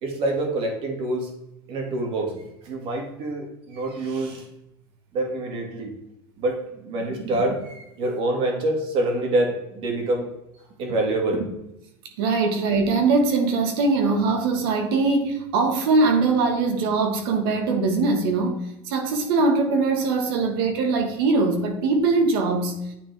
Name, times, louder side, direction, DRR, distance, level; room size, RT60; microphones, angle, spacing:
voice 1, 0.0-1.3 1.7-4.5 5.1-5.9 6.4-10.3 10.8-11.5, right 2 dB, 45° right, 1 dB, 1.9 m, -26 dB
voice 2, 12.2-18.6 18.8-22.8, right 3 dB, 75° right, 5 dB, 1.4 m, -21 dB
9.2 x 3.7 x 3.4 m, 0.86 s
supercardioid pair, 135°, 12 cm